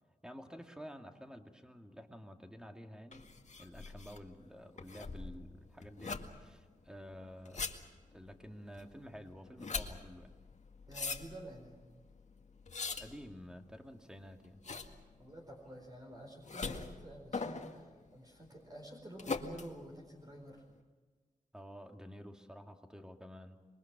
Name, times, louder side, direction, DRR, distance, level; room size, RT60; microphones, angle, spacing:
voice 1, 0.2-3.3 3.6-7.7 8.1-10.4 13.0-14.6 21.5-23.6, equal, 5° right, 4 dB, 2.4 m, -50 dB
sound 1, 3.1-20.7, left 4 dB, 55° left, 2.0 m, -44 dB
voice 2, 10.9-11.8 15.2-20.6, right 1 dB, 25° right, 0 dB, 4.5 m, -50 dB
27.0 x 23.0 x 6.1 m, 1.4 s
wide cardioid pair, 85°, 14 cm